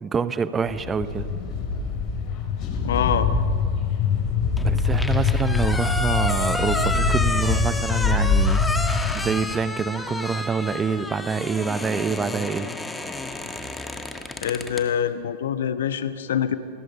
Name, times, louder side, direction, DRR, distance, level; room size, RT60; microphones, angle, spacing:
voice 1, 0.0-1.3 4.6-8.6 9.1-12.7, right 5 dB, 20° right, 14 dB, 0.9 m, -26 dB
sound 1, 0.6-9.2, left 4 dB, 40° left, 4.5 m, -23 dB
voice 2, 2.8-3.3 14.4-16.6, left 9 dB, 60° left, 12 dB, 1.2 m, -25 dB
sound 2, 4.6-14.9, left 2 dB, 10° left, 1.7 m, -30 dB
29.0 x 21.0 x 5.6 m, 2.2 s
figure-of-eight pair, 90°, 0 cm